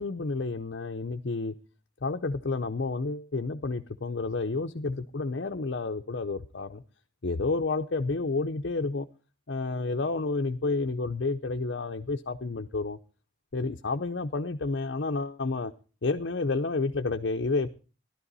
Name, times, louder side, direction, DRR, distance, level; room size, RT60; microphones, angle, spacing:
voice 1, 0.0-1.5 2.0-6.8 7.2-9.1 9.5-13.0 13.5-15.7 16.0-17.7, left 3 dB, 65° left, 0.7 m, -30 dB
13.0 x 12.0 x 4.1 m
head